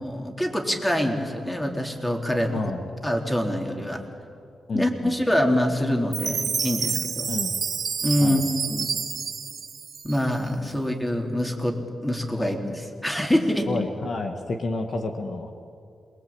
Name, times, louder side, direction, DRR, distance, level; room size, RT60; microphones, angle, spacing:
voice 1, 0.0-2.7 3.0-4.0 4.7-7.3 8.0-8.4 8.7-8.9 10.0-13.7, left 1 dB, 10° left, 2 dB, 3.9 m, -25 dB
voice 2, 4.7-5.1 7.3-7.6 8.2-8.4 10.7-10.8 12.4-12.5 13.7-15.5, left 3 dB, 60° left, 5 dB, 2.0 m, -30 dB
Chime, 6.1-10.5, right 6 dB, 65° right, 2.3 m, -29 dB
27.0 x 22.0 x 8.9 m, 2.4 s
cardioid pair, 75°, 0 cm